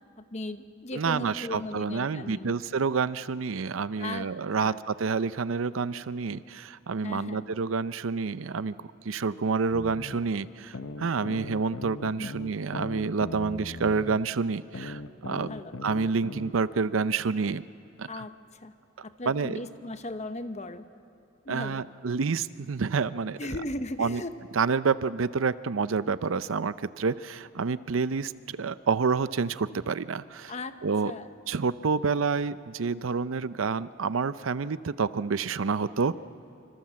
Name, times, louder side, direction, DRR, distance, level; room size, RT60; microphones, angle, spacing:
voice 1, 0.2-2.6 4.0-4.3 4.6-4.8 7.0-7.5 12.2-12.3 15.5-15.8 18.0-18.4 18.6-18.7 19.0-20.8 21.4-21.8 23.4-24.4 30.5-30.8 31.0-31.3, left 2 dB, 35° left, 10 dB, 0.9 m, -37 dB
voice 2, 0.9-15.5 15.8-17.6 18.0-18.2 19.2-19.6 21.5-23.4 24.0-24.2 24.6-30.5 30.8-31.1 31.5-36.1, right 5 dB, 85° right, 15 dB, 0.6 m, -28 dB
sound 1, 9.7-10.2 10.7-14.2 14.7-16.6, left 2 dB, 80° left, 0.9 m, -39 dB
27.0 x 25.5 x 7.6 m, 2.6 s
head